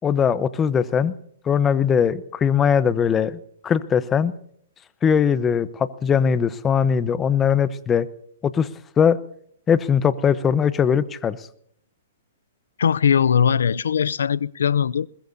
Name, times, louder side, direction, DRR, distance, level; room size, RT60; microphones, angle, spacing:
voice 1, 0.0-1.1 1.4-4.3 5.0-8.1 8.4-8.7 9.0-9.2 9.7-11.4, left 7 dB, 15° left, 0.9 m, -20 dB
voice 2, 12.8-15.1, left 7 dB, 80° left, 0.5 m, -20 dB
21.5 x 20.5 x 2.7 m
hypercardioid pair, 140°, 0 cm